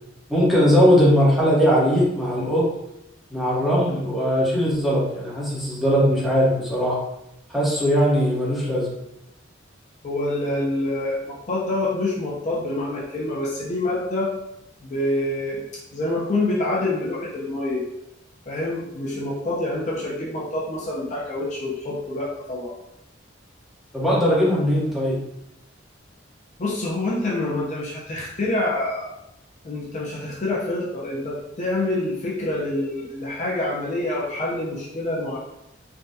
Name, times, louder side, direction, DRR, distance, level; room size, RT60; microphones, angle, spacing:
voice 1, 0.3-2.7 3.3-7.0 7.5-8.9 23.9-25.2, equal, ahead, -7 dB, 0.8 m, -19 dB
voice 2, 10.0-14.3 14.8-15.6 15.9-17.8 18.5-22.8 26.6-29.2 29.6-35.4, left 2 dB, 40° left, -4 dB, 0.5 m, -26 dB
3.4 x 2.2 x 2.6 m, 0.85 s
head